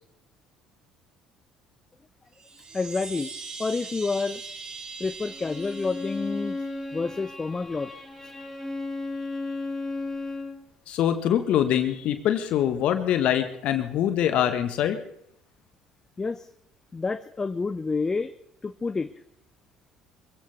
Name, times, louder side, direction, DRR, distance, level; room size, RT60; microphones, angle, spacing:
Chime, 2.3-7.0, right 4 dB, 40° right, 2.6 m, -41 dB
voice 1, 2.7-3.3 3.6-4.4 5.0-6.6 6.9-7.9 8.2-8.3 16.2-16.5 16.9-18.3 18.6-19.1, left 4 dB, 25° left, 12 dB, 0.8 m, -29 dB
Bowed string instrument, 5.3-10.6, left 2 dB, 5° right, 6.5 m, -34 dB
voice 2, 10.9-15.0, left 10 dB, 60° left, 9 dB, 1.5 m, -24 dB
24.5 x 16.5 x 3.5 m, 0.74 s
hypercardioid pair, 60°, 2 cm